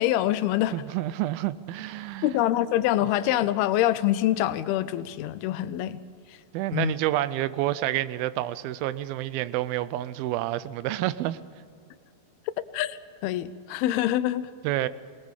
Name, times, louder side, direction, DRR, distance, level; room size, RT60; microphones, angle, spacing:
voice 1, 0.0-0.7 2.2-6.0 6.3-6.4 6.7-6.9 12.7-14.5, left 13 dB, 85° left, 2.6 m, -25 dB
voice 2, 0.7-2.3 6.5-11.4 14.6-14.9, right 14 dB, 80° right, 2.4 m, -28 dB
20.5 x 20.0 x 7.3 m
omnidirectional pair, 4.4 m